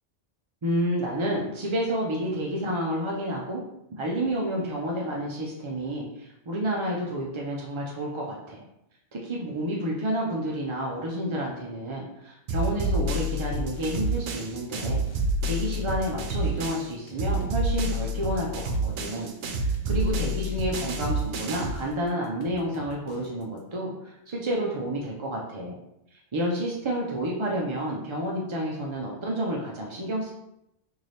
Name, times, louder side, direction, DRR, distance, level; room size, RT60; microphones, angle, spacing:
voice 1, 0.6-3.6 4.0-8.6 9.1-15.0 15.5-19.3 19.6-25.8 26.3-30.3, right 1 dB, 45° right, -2 dB, 0.4 m, -30 dB
sound 1, 12.5-16.9 17.2-21.8, right 1 dB, 85° right, 0.9 m, -28 dB
sound 2, 13.1-23.6, left 1 dB, 60° left, 0.8 m, -49 dB
4.0 x 2.7 x 3.2 m, 0.84 s
omnidirectional pair, 1.2 m